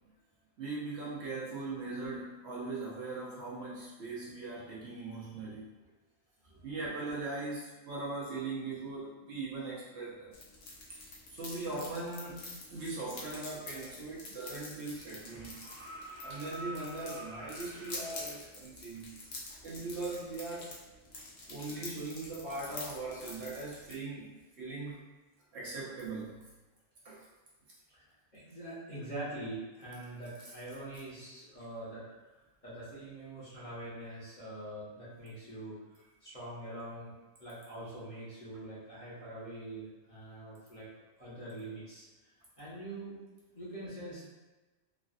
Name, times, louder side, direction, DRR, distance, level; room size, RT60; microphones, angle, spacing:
voice 1, 0.6-5.7 6.6-10.3 11.3-15.6 16.2-19.2 19.6-20.7 21.5-25.0 25.5-26.5 27.0-27.2, right 3 dB, 65° right, -6 dB, 0.9 m, -40 dB
sound 1, 10.3-24.0, left 2 dB, 60° left, 0.8 m, -47 dB
sound 2, 15.2-18.4 20.2-20.3, right 1 dB, 15° right, 0.4 m, -47 dB
voice 2, 28.3-32.1 32.6-35.8 36.2-37.1 37.4-40.9 41.2-42.0 42.6-43.2 43.5-44.3, right 1 dB, 40° left, -10 dB, 1.1 m, -44 dB
3.2 x 2.4 x 2.5 m, 1.1 s
omnidirectional pair, 1.3 m